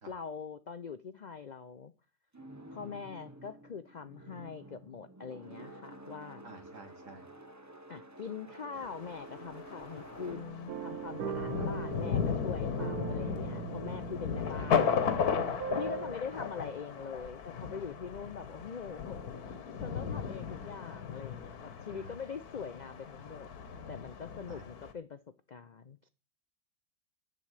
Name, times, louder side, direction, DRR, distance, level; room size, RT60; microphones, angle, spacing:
voice 1, 0.1-1.9 2.7-6.4 7.9-19.2 19.8-23.5 23.9-25.2 25.5-26.1, left 6 dB, 65° left, 0.4 m, -43 dB
sound 1, 2.3-12.3, right 1 dB, 15° right, 0.7 m, -51 dB
voice 2, 6.4-7.3 11.6-11.7 14.5-14.7 21.9-22.2 24.5-24.7, right 3 dB, 60° right, 2.4 m, -50 dB
Thunder, 8.7-24.9, left 6 dB, 90° left, 1.7 m, -36 dB
sound 2, 10.7-16.1, right 8 dB, 90° right, 1.4 m, -40 dB
11.0 x 5.3 x 8.2 m
omnidirectional pair, 1.6 m